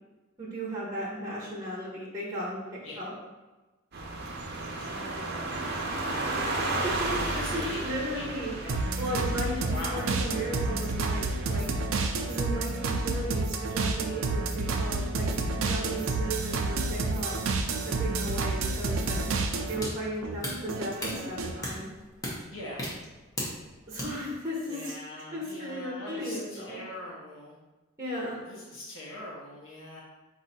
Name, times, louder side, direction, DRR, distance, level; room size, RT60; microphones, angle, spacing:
voice 1, 0.4-2.6 3.0-3.1 6.6-8.5 9.0-11.7 12.3-15.3 15.6-17.3 17.8-19.2 19.7-21.9 23.9-25.0 25.3-26.8 28.0-28.4, equal, 15° right, -6 dB, 1.0 m, -35 dB
sound 1, 3.9-11.6, right 2 dB, 55° right, 0.7 m, -34 dB
voice 2, 4.8-6.4 7.2-7.8 8.1-8.8 9.5-10.3 22.5-22.8 24.7-27.6 28.5-30.0, left 1 dB, 70° left, -5 dB, 1.0 m, -42 dB
sound 2, 8.7-19.9 20.2-21.6, right 3 dB, 90° right, 0.5 m, -30 dB
sound 3, 18.8-24.0, left 1 dB, 15° left, 1.0 m, -38 dB
4.8 x 2.7 x 4.2 m, 1.1 s
head